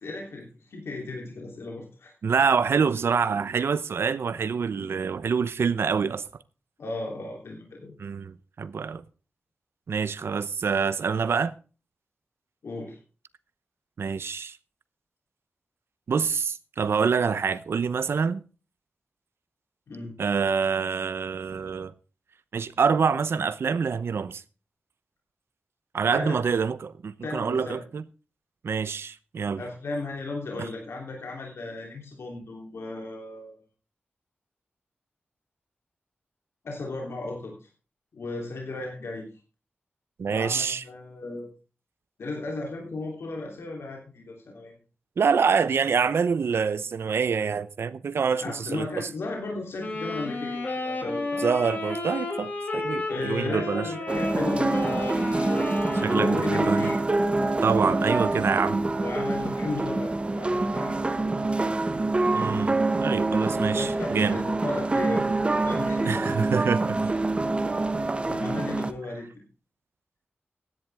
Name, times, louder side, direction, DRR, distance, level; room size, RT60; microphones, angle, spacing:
voice 1, 0.0-2.1 6.8-7.9 12.6-13.0 19.9-20.1 26.1-26.4 27.2-27.9 29.6-33.6 36.6-37.7 38.1-39.3 40.2-41.5 42.2-44.8 48.4-51.8 53.1-55.6 56.1-57.0 59.0-61.3 63.7-65.3 65.6-66.4 68.3-69.4, left 2 dB, 85° left, 3.2 m, -35 dB
voice 2, 2.2-6.2 8.0-9.0 9.9-11.5 14.0-14.6 16.1-18.4 20.2-21.9 22.5-24.4 25.9-28.0 28.6-29.6 40.2-40.8 45.2-49.1 51.4-53.9 56.0-56.9 57.6-58.8 62.3-64.4 66.1-67.1, right 6 dB, 75° right, 0.8 m, -26 dB
Wind instrument woodwind instrument, 49.8-57.0, left 2 dB, 45° left, 6.7 m, -32 dB
sound 1, 54.1-68.9, right 2 dB, 25° right, 0.9 m, -26 dB
15.5 x 10.5 x 3.5 m
wide cardioid pair, 125°, 4 cm